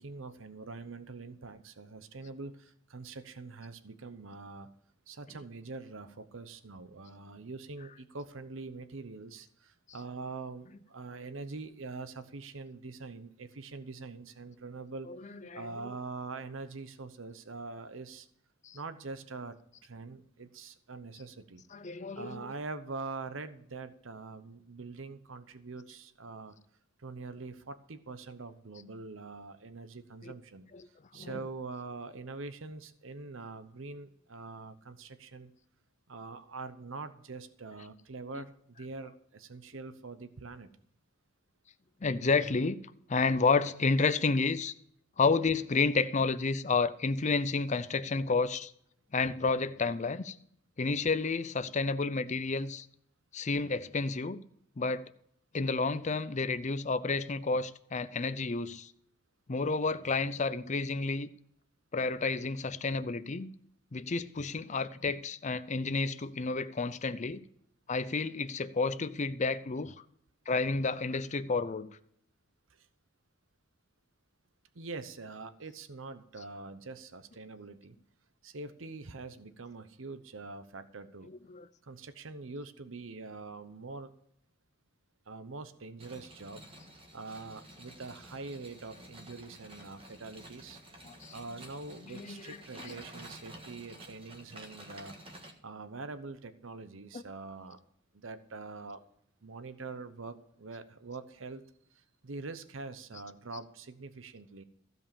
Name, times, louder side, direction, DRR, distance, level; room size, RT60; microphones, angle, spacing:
voice 1, 0.0-4.7 5.1-15.1 15.5-18.3 18.7-19.5 19.8-21.6 22.1-26.6 27.0-30.7 31.1-35.5 36.1-40.7 72.7-72.9 74.7-78.0 78.4-81.3 81.8-84.1 85.3-86.6 87.1-90.8 91.3-95.1 95.6-97.8 98.1-99.0 99.4-101.6 101.9-104.6, right 3 dB, 75° right, 0.9 m, -44 dB
voice 2, 21.7-22.5 30.2-30.3 31.1-31.3 38.3-38.4 42.0-42.8 43.1-44.7 45.2-48.7 49.1-50.4 50.8-52.9 53.3-54.4 54.8-55.1 55.5-58.9 59.5-61.3 61.9-63.5 63.9-67.4 67.9-69.9 70.5-72.0 81.5-81.7 91.0-91.3 92.1-93.0 97.1-97.2, left 4 dB, 35° left, 0.6 m, -30 dB
sound 1, 86.0-95.5, right 1 dB, 30° right, 1.6 m, -51 dB
15.5 x 5.4 x 7.0 m
head